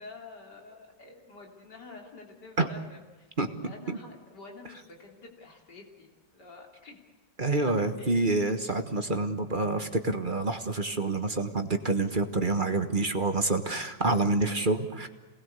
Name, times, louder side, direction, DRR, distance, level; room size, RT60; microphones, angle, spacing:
voice 1, 0.0-3.3 3.6-7.0 7.4-7.5 8.0-8.2, left 3 dB, 60° left, 1 dB, 4.0 m, -48 dB
voice 2, 3.4-4.0 7.4-15.1, right 3 dB, 30° right, 6 dB, 1.4 m, -27 dB
27.5 x 20.0 x 8.2 m, 1.2 s
omnidirectional pair, 2.1 m